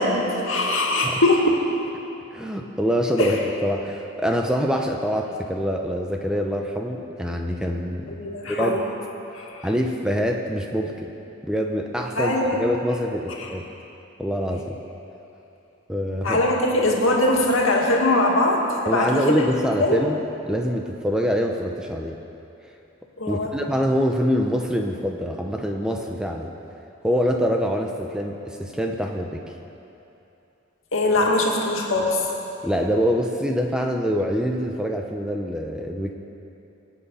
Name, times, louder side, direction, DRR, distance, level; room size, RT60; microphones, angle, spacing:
voice 1, 0.0-1.4 3.2-3.4 8.1-8.8 9.3-9.7 12.2-12.6 13.4-13.5 16.2-19.2 19.8-20.0 23.2-23.5 30.9-32.2, left 2 dB, 75° left, -1 dB, 2.2 m, -21 dB
voice 2, 2.3-8.2 8.5-8.8 9.6-11.1 11.4-13.6 14.2-14.8 15.9-16.4 18.9-22.2 23.3-26.5 27.0-29.4 32.6-36.1, equal, 5° right, 2 dB, 0.7 m, -25 dB
24.0 x 8.4 x 5.6 m, 2.9 s
head